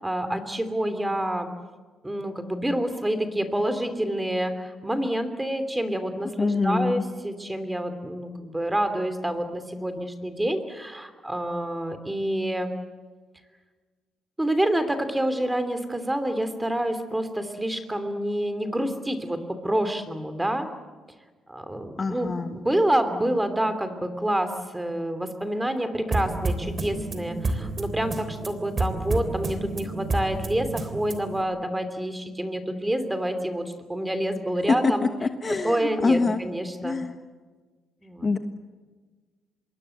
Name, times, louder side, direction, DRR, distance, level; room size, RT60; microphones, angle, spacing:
voice 1, 0.0-1.5 2.0-12.7 14.4-20.7 21.5-35.1 35.5-37.0 38.0-38.3, right 1 dB, 10° right, 9 dB, 3.0 m, -28 dB
voice 2, 6.4-7.0 22.0-22.5 34.8-34.9 35.2-36.4 36.8-37.1 38.2-38.4, left 4 dB, 30° left, 8 dB, 1.4 m, -25 dB
sound 1, 26.1-31.4, right 2 dB, 35° right, 3.5 m, -30 dB
26.5 x 22.0 x 7.9 m, 1.4 s
cardioid pair, 115°, 0 cm